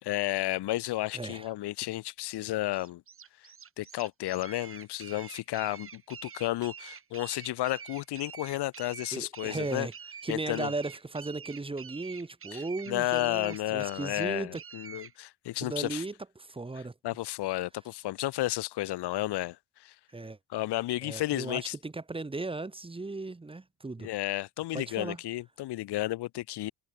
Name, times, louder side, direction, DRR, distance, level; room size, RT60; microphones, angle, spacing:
voice 1, 0.0-3.0 3.8-9.9 10.3-10.7 12.5-16.0 17.0-19.9 20.5-21.7 24.0-26.7, left 16 dB, 80° left, 3.9 m, -32 dB
voice 2, 1.1-1.5 9.1-9.9 10.2-14.6 15.6-16.9 20.1-20.4 21.0-24.1 24.7-25.2, right 3 dB, 15° right, 2.7 m, -36 dB
sound 1, 2.7-15.1, right 7 dB, 35° right, 3.4 m, -46 dB
cardioid pair, 140°, 40 cm